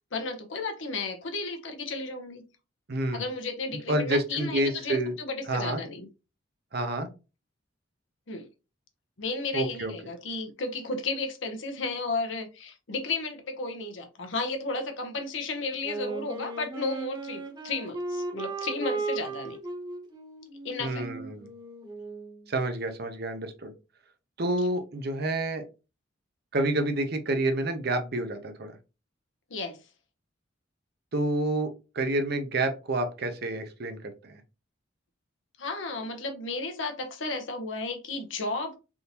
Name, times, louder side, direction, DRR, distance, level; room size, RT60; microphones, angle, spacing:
voice 1, 0.1-2.4 3.1-6.1 8.3-8.5 9.2-19.6 20.6-21.1 29.5-29.8 35.6-38.8, left 3 dB, 70° left, 0.8 m, -33 dB
voice 2, 2.9-3.2 3.9-5.1 5.5-5.8 6.7-7.1 9.5-9.9 20.8-21.5 22.5-23.7 24.4-25.6 26.5-28.7 31.1-34.4, right 1 dB, 55° right, 0.6 m, -29 dB
Wind instrument woodwind instrument, 15.8-22.4, right 3 dB, 20° right, 0.9 m, -36 dB
3.5 x 2.7 x 2.8 m
head